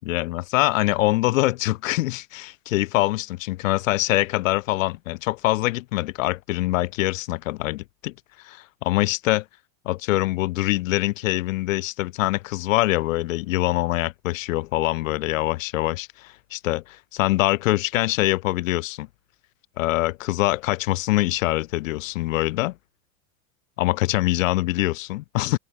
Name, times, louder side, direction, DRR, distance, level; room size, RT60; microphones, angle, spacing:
voice 1, 0.0-8.1 8.4-9.4 9.9-16.8 17.1-19.1 19.8-22.8 23.8-25.6, left 18 dB, 65° left, 5.3 m, -24 dB
supercardioid pair, 180°, 43 cm